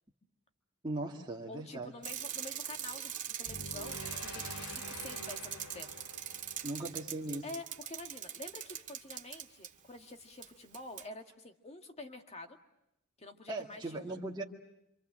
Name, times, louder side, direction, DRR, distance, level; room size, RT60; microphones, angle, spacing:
voice 1, 0.8-1.9 6.6-7.4 13.5-14.4, right 2 dB, 20° right, -2 dB, 2.1 m, -38 dB
voice 2, 1.5-5.9 7.4-12.6 13.2-14.2, left 2 dB, 30° left, 5 dB, 2.0 m, -48 dB
Bicycle, 2.0-9.7 10.4-10.5 10.7-11.0, right 10 dB, 35° right, 2.0 m, -42 dB
sound 1, 3.4-7.7, left 1 dB, 75° left, 2.9 m, -47 dB
27.0 x 26.5 x 7.7 m, 0.82 s
head